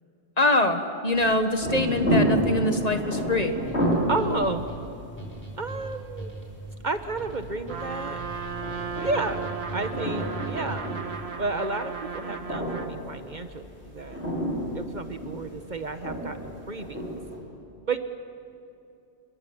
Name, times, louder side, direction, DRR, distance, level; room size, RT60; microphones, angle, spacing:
voice 1, 0.4-3.5, left 1 dB, 40° left, 7 dB, 1.5 m, -24 dB
sound 1, 1.1-17.4, equal, 90° left, 5.7 m, -31 dB
sound 2, 3.2-11.1, right 2 dB, 10° left, 4.9 m, -41 dB
voice 2, 4.1-4.7 5.6-6.3 6.8-8.3 9.0-10.9 11.4-14.2 14.7-17.0 17.9-18.0, right 3 dB, 45° right, 9 dB, 1.1 m, -31 dB
Trumpet, 7.7-13.0, right 6 dB, 75° right, 1.5 m, -35 dB
29.5 x 21.5 x 7.2 m, 2.7 s
omnidirectional pair, 1.1 m